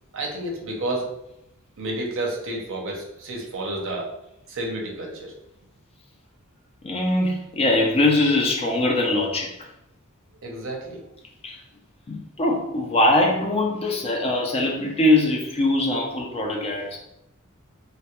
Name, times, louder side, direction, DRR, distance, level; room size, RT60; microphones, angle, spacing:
voice 1, 0.1-1.1 1.8-4.1 4.5-5.3 10.4-11.0, right 1 dB, 65° right, 0 dB, 0.6 m, -30 dB
voice 2, 6.8-9.5 11.4-11.6 12.1-17.0, left 2 dB, 30° left, 0 dB, 0.4 m, -22 dB
2.2 x 2.0 x 2.9 m, 0.83 s
head